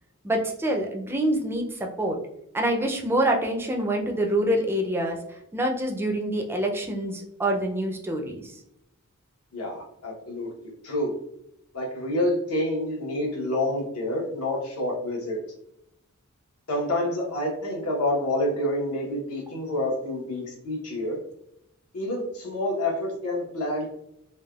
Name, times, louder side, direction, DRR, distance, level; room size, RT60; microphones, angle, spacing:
voice 1, 0.2-2.2 2.5-5.2 5.5-8.6, right 1 dB, 10° right, 1 dB, 0.4 m, -26 dB
voice 2, 9.5-11.1 11.7-15.4 16.7-21.2 21.9-24.0, left 1 dB, 75° left, -1 dB, 1.0 m, -28 dB
3.3 x 2.2 x 2.3 m, 0.78 s
head